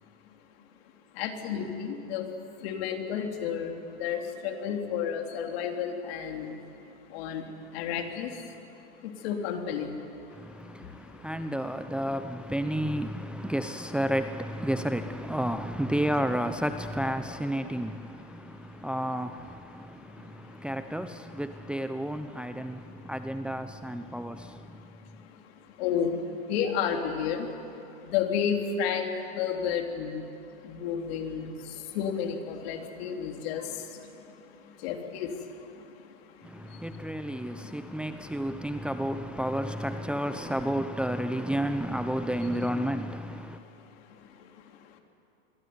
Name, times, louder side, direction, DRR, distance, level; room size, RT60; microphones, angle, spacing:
voice 1, 1.1-6.6 7.1-11.3 18.5-18.9 19.7-20.6 22.5-23.0 24.3-24.4 24.8-27.6 27.8-30.4 30.6-36.1 36.4-37.9 43.5-45.0, left 7 dB, 65° left, 3.6 m, -33 dB
voice 2, 10.3-24.9 36.4-43.6, equal, 5° right, 0.8 m, -31 dB
27.0 x 22.0 x 9.7 m
supercardioid pair, 120°, 33 cm